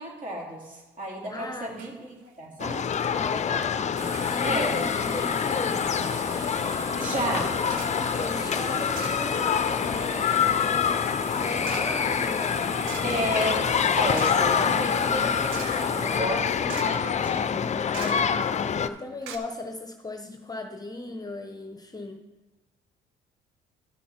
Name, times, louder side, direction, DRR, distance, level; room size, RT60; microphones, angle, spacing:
voice 1, 0.0-2.8 4.4-4.8 7.0-7.6 13.0-17.6, right 1 dB, 40° right, -2 dB, 3.8 m, -32 dB
sound 1, 1.1-1.4 1.7-2.0 2.3-2.4 2.7-3.1 4.0-4.4 5.1-5.4 6.0-6.1 6.4-6.6 7.7-8.0 8.9-9.6 9.9-18.6 18.9-19.0 19.2-19.4, right 7 dB, 75° right, 1.0 m, -44 dB
voice 2, 1.2-1.8 3.0-3.8 4.2-5.9 8.1-11.0 11.4-12.6 17.9-18.4 18.8-22.2, left 2 dB, 20° left, 5 dB, 1.0 m, -37 dB
sound 2, 2.6-18.9, left 7 dB, 35° left, 0.5 m, -26 dB
sound 3, 4.0-16.2, right 1 dB, 15° right, 1.8 m, -38 dB
12.5 x 6.3 x 4.4 m, 1.1 s
supercardioid pair, 70°, 20 cm